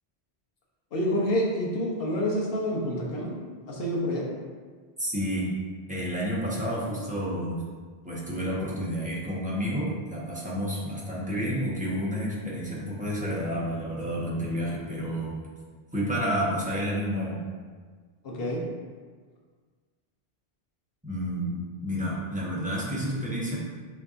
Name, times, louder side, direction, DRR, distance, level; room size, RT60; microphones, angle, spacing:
voice 1, 0.9-3.4 3.6-4.3 18.2-18.6, left 1 dB, 70° left, -3 dB, 1.0 m, -28 dB
voice 2, 5.0-5.5 5.9-7.6 8.0-15.4 15.9-17.4 21.0-23.6, equal, 10° right, -7 dB, 1.1 m, -30 dB
6.7 x 3.0 x 2.5 m, 1.5 s
omnidirectional pair, 1.1 m